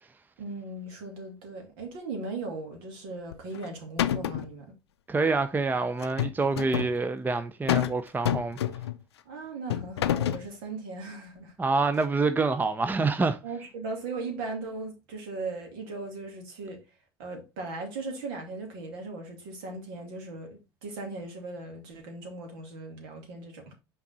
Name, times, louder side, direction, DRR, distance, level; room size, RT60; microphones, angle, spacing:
voice 1, 0.4-4.7 9.3-11.5 13.4-16.8 17.2-23.7, right 3 dB, 65° right, 2.7 m, -38 dB
sound 1, 3.3-3.7 4.0-4.5 6.0-6.9 7.7-8.0 8.3-9.0 9.7-10.5, left 11 dB, 80° left, 0.5 m, -28 dB
voice 2, 5.1-8.6 11.6-13.4, right 3 dB, 15° right, 0.6 m, -26 dB
5.9 x 4.8 x 4.0 m
hypercardioid pair, 75°, 13 cm